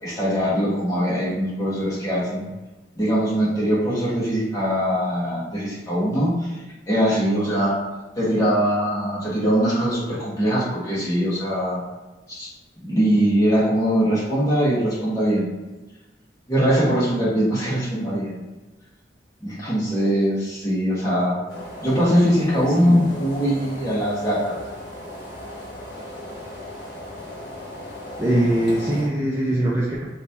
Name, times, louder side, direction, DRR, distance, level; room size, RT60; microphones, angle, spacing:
voice 1, 0.0-2.5 3.0-6.5 6.9-7.7 8.2-11.8 12.3-12.5 12.8-15.5 16.5-18.4 19.4-21.4 21.8-24.6, equal, 20° left, -8 dB, 1.3 m, -21 dB
sound 1, 21.5-29.1, left 1 dB, 55° left, 1.1 m, -37 dB
voice 2, 22.7-23.1 28.2-30.1, right 1 dB, 15° right, -7 dB, 0.5 m, -22 dB
3.1 x 2.7 x 3.4 m, 1.1 s
head